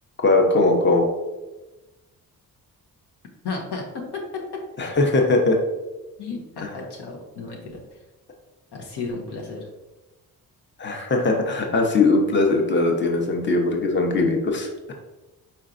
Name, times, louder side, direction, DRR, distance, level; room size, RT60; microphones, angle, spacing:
voice 1, 0.2-1.1 4.8-5.6 10.8-14.9, left 2 dB, 30° left, 2 dB, 0.8 m, -20 dB
voice 2, 3.4-3.8 4.1-4.4 6.2-7.8 8.7-9.7, left 4 dB, 85° left, 0 dB, 1.0 m, -33 dB
4.5 x 4.3 x 2.5 m, 1.1 s
cardioid pair, 70°, 39 cm